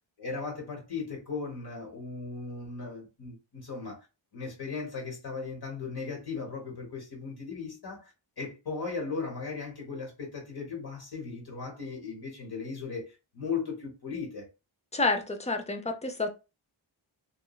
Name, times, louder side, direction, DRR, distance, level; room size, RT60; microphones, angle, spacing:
voice 1, 0.2-4.1 4.3-14.5, left 4 dB, 50° left, 1.1 m, -37 dB
voice 2, 14.9-16.3, left 3 dB, 15° left, 0.3 m, -29 dB
3.0 x 2.3 x 2.3 m
wide cardioid pair, 125°, 48 cm